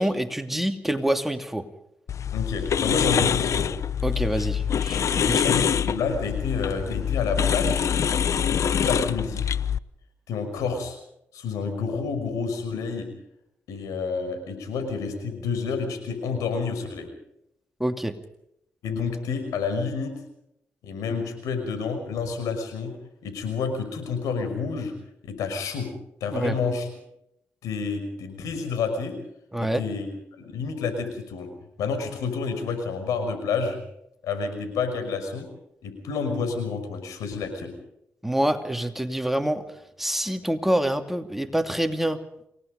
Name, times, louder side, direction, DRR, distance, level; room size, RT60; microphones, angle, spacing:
voice 1, 0.0-1.7 4.0-5.5 17.8-18.1 26.3-26.5 29.5-29.8 38.2-39.6 40.0-42.2, right 1 dB, 5° right, 6 dB, 2.7 m, -26 dB
sound 1, 2.1-9.8, left 8 dB, 65° left, 0.8 m, -25 dB
voice 2, 2.3-3.7 5.3-7.9 8.4-9.4 10.3-11.0 11.3-13.1 13.7-17.1 18.8-20.1 20.8-22.9 23.2-24.9 25.2-25.9 26.2-26.9 27.6-29.1 29.6-30.1 30.4-31.5 31.8-33.8 34.2-35.5 35.8-37.7, left 5 dB, 85° left, 6 dB, 5.9 m, -29 dB
28.5 x 18.5 x 5.3 m, 0.78 s
supercardioid pair, 45°, 6 cm